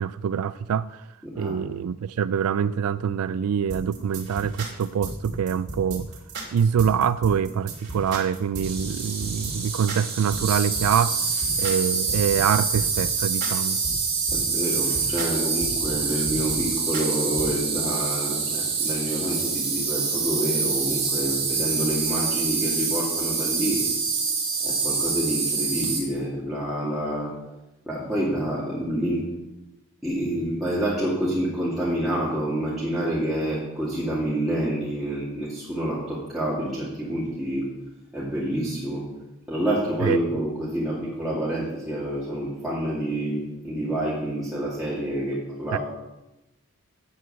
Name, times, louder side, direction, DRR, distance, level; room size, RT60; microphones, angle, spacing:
voice 1, 0.0-1.0 1.4-6.1 6.5-11.2 11.6-13.8 40.0-40.2 45.7-45.8, right 7 dB, 85° right, 15 dB, 0.3 m, -25 dB
voice 2, 1.2-1.7 14.3-23.8 24.6-27.3 27.9-29.3 30.0-37.6 38.1-39.0 39.5-45.8, right 1 dB, ahead, -10 dB, 2.4 m, -28 dB
sound 1, 3.7-17.6, right 2 dB, 50° right, 2.7 m, -35 dB
Insect, 8.6-26.0, right 5 dB, 25° right, 2.6 m, -26 dB
8.3 x 7.7 x 8.1 m, 1.0 s
head